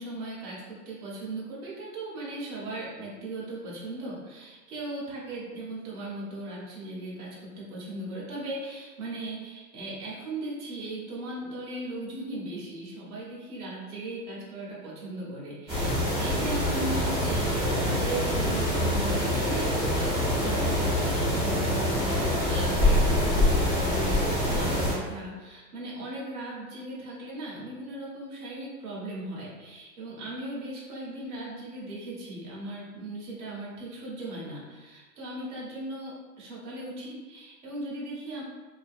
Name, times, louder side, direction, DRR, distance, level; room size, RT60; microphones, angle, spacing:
voice 1, 0.0-19.7 19.9-38.4, right 2 dB, 60° right, -5 dB, 1.2 m, -38 dB
sound 1, 15.7-24.9, left 1 dB, 5° right, 1.3 m, -25 dB
2.7 x 2.6 x 2.5 m, 1.3 s
hypercardioid pair, 150°, 49 cm